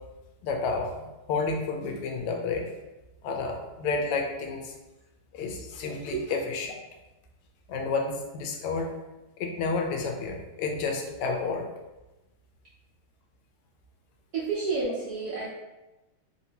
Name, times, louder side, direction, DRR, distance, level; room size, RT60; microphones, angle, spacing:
voice 1, 0.4-2.7 3.2-4.7 5.3-6.7 7.7-8.9 9.4-11.7, left 4 dB, 85° left, 2 dB, 1.5 m, -30 dB
voice 2, 14.3-15.5, right 4 dB, 75° right, -6 dB, 0.9 m, -30 dB
3.7 x 2.6 x 2.8 m, 1.0 s
omnidirectional pair, 2.4 m